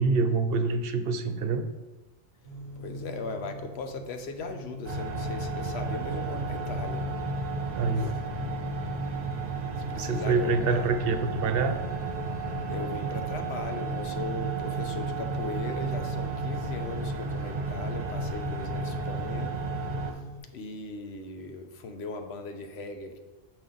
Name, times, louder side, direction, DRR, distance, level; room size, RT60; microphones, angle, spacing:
voice 1, 0.0-1.6 7.7-8.2 10.0-11.8, right 4 dB, 70° right, 8 dB, 0.8 m, -26 dB
sound 1, 2.4-20.4, equal, 45° left, 2.3 m, -44 dB
voice 2, 2.8-7.1 8.0-8.1 9.9-11.0 12.7-19.6 20.1-20.2 20.5-23.2, left 3 dB, 85° left, 6 dB, 1.0 m, -38 dB
sound 2, 4.8-20.1, right 3 dB, 45° right, 0.9 m, -32 dB
6.2 x 5.3 x 3.9 m, 1.1 s
omnidirectional pair, 1.1 m